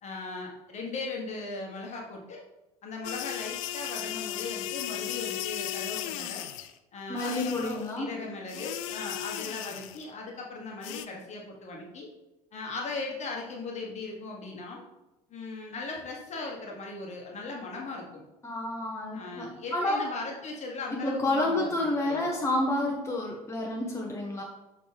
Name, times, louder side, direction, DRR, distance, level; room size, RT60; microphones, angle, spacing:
voice 1, 0.0-2.4 2.8-6.4 6.9-12.1 12.5-14.8 15.3-18.2 19.1-22.3, left 3 dB, 35° left, -1 dB, 1.5 m, -38 dB
sound 1, 3.0-6.7 7.2-7.9 8.5-10.1 10.8-11.1, left 12 dB, 60° left, 0.4 m, -36 dB
voice 2, 7.1-8.1 18.4-20.1 20.9-24.4, left 1 dB, 15° left, -2 dB, 1.2 m, -29 dB
6.7 x 5.3 x 3.4 m, 1.0 s
figure-of-eight pair, 65°, 19 cm